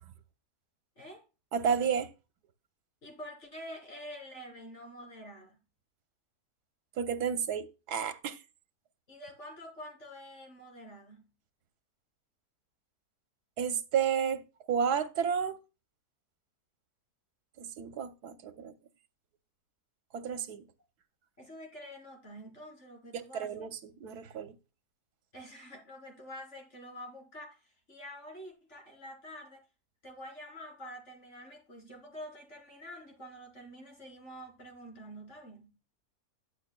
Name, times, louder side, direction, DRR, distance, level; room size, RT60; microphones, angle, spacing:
voice 1, 1.5-2.1 7.0-8.4 13.6-15.6 17.6-18.7 20.1-20.6 23.3-24.5, right 7 dB, 85° right, 1.4 m, -31 dB
voice 2, 3.0-5.6 9.1-11.3 21.4-23.7 25.3-29.6 30.0-35.7, equal, 50° left, 3.9 m, -47 dB
11.0 x 9.0 x 2.2 m
omnidirectional pair, 1.6 m